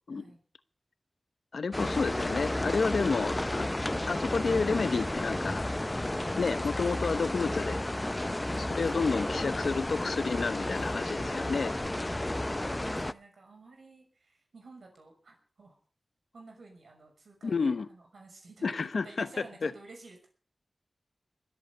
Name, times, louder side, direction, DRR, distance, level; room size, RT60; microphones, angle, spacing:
voice 1, 1.5-3.7 4.1-5.6 6.4-7.8 8.7-11.7 17.4-17.9 18.6-19.3 19.6-19.7, left 4 dB, 85° left, 15 dB, 0.9 m, -30 dB
sound 1, 1.7-13.1, left 1 dB, 20° left, 0.6 m, -32 dB
voice 2, 8.5-9.6 10.4-15.8 16.3-20.3, right 3 dB, 85° right, 2 dB, 5.9 m, -52 dB
22.0 x 8.3 x 6.7 m, 0.42 s
wide cardioid pair, 70°, 0 cm